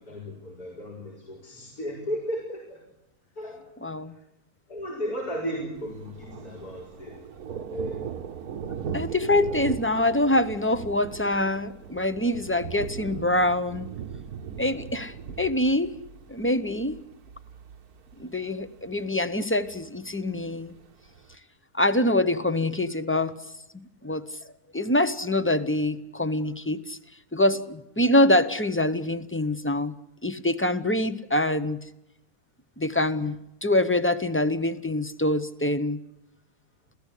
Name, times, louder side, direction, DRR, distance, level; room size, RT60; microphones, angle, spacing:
voice 1, 0.0-2.8 3.4-3.6 4.7-7.2 7.7-8.0, equal, 70° left, -2 dB, 5.3 m, -35 dB
voice 2, 3.8-4.1 8.9-13.9 14.6-15.9 16.3-16.9 18.2-20.7 21.7-23.3 24.0-24.2 24.7-27.0 27.3-29.9 30.2-31.8 32.8-36.0, left 1 dB, 10° left, 11 dB, 0.7 m, -25 dB
Thunder, 5.8-21.3, right 7 dB, 70° right, 1.5 m, -39 dB
28.5 x 16.5 x 8.4 m, 0.86 s
omnidirectional pair, 1.7 m